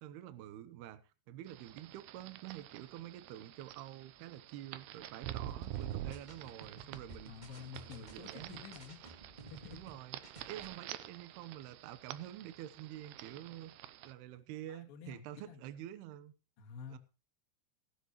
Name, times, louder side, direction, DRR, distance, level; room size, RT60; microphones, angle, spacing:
voice 1, 0.0-1.0 1.3-7.3 7.7-8.6 9.7-10.2 10.5-13.7 14.0-16.3 16.9-17.0, right 12 dB, 75° right, 2.6 m, -48 dB
sound 1, 1.5-14.1, right 13 dB, 90° right, 2.3 m, -48 dB
sound 2, 5.5-9.9 10.2-10.6, right 3 dB, 50° right, 0.5 m, -53 dB
voice 2, 7.2-9.0 9.5-9.8 14.7-15.6 16.6-17.0, left 7 dB, 55° left, 3.2 m, -50 dB
18.5 x 12.0 x 3.1 m
omnidirectional pair, 5.6 m